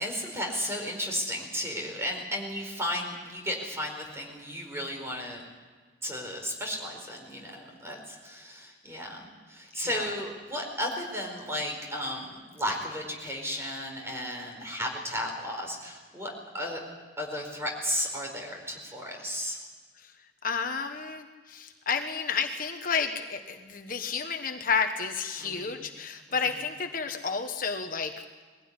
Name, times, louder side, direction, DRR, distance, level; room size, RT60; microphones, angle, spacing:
voice 1, 0.0-5.4 6.0-16.8 17.2-19.6 25.4-25.8, equal, 15° right, 1 dB, 4.7 m, -34 dB
voice 2, 9.7-10.1 20.0-20.1 20.4-28.1, left 5 dB, 50° left, 6 dB, 1.2 m, -31 dB
22.0 x 16.0 x 9.7 m, 1.5 s
head